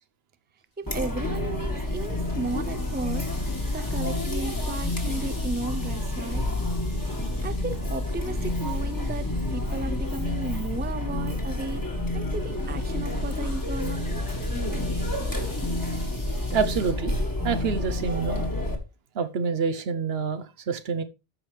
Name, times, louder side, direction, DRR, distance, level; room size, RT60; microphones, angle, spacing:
voice 1, 0.8-6.5 7.4-11.8 12.1-14.3 14.7-15.5, right 3 dB, 15° right, 0.5 m, -35 dB
Chatter, 0.9-18.8, left 1 dB, 20° left, 1.6 m, -29 dB
sound 1, 1.6-11.0 12.2-16.9, left 1 dB, 60° left, 4.8 m, -47 dB
voice 2, 16.5-18.4 19.1-21.0, right 5 dB, 70° right, 1.0 m, -27 dB
13.5 x 4.9 x 3.3 m
omnidirectional pair, 1.1 m